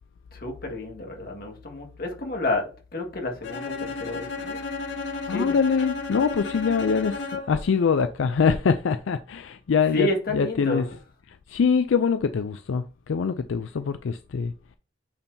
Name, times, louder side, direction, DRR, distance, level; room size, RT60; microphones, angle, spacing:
voice 1, 0.3-4.6 5.3-5.6 9.9-10.8, left 1 dB, 50° left, 1.8 m, -30 dB
Bowed string instrument, 3.4-7.7, left 4 dB, 70° left, 0.9 m, -33 dB
voice 2, 5.1-10.9 11.5-14.5, left 5 dB, 85° left, 0.4 m, -24 dB
8.5 x 4.4 x 2.7 m
head